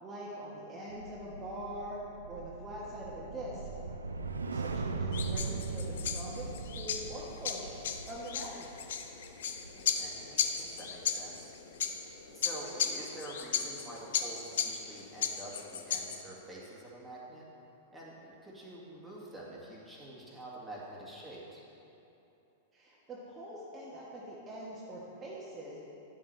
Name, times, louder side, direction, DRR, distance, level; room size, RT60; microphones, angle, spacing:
voice 1, 0.0-2.0 2.3-3.7 4.5-7.7 8.1-8.7 22.7-25.8, right 1 dB, 25° right, -6 dB, 1.4 m, -43 dB
sound 1, 0.9-11.3 11.6-11.9, right 4 dB, 90° right, 0.5 m, -40 dB
sound 2, 5.1-16.2, left 7 dB, 70° left, 0.6 m, -36 dB
voice 2, 9.7-11.5 12.3-17.4 17.9-21.6, right 1 dB, ahead, -7 dB, 2.1 m, -47 dB
10.0 x 7.4 x 3.3 m, 2.9 s
hypercardioid pair, 105°, 0 cm